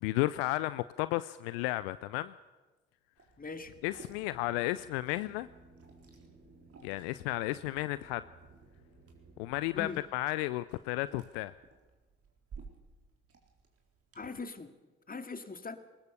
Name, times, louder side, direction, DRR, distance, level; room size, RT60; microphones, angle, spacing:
voice 1, 0.0-2.3 3.8-5.5 6.8-8.2 9.4-11.5, left 18 dB, 75° left, 16 dB, 0.6 m, -33 dB
Liquid, 3.2-14.3, right 5 dB, 50° right, 4.0 m, -57 dB
voice 2, 3.4-3.7 9.7-10.0 14.1-14.7 15.1-15.8, left 4 dB, 25° left, 8 dB, 2.2 m, -41 dB
sound 1, 3.5-10.0, right 3 dB, 65° right, 7.1 m, -58 dB
21.5 x 19.5 x 6.9 m, 1.2 s
figure-of-eight pair, 40°, 31 cm